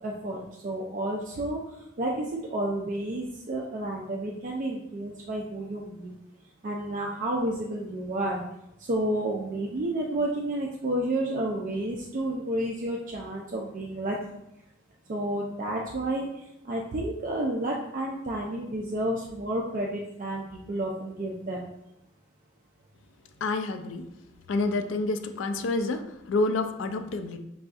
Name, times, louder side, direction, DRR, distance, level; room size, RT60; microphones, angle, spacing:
voice 1, 0.0-1.6 2.0-6.2 6.6-8.4 8.8-14.4 15.1-21.6, right 1 dB, 40° right, -2 dB, 0.4 m, -31 dB
voice 2, 23.4-24.1 24.5-27.4, left 2 dB, 65° left, 8 dB, 0.3 m, -28 dB
5.4 x 2.6 x 2.3 m, 0.83 s
head